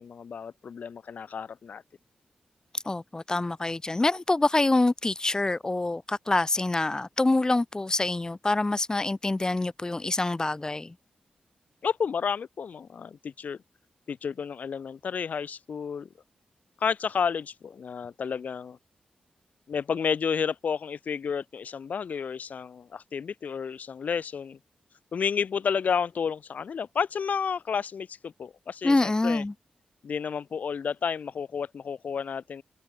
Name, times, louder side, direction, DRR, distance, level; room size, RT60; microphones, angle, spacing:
voice 1, 0.0-1.8 11.8-13.6 14.1-16.1 16.8-18.8 19.7-24.6 25.1-29.4 30.0-32.6, left 6 dB, 70° left, 0.6 m, -31 dB
voice 2, 2.8-10.9 28.8-29.5, left 2 dB, 25° left, 1.1 m, -26 dB
cardioid pair, 65°, 3 cm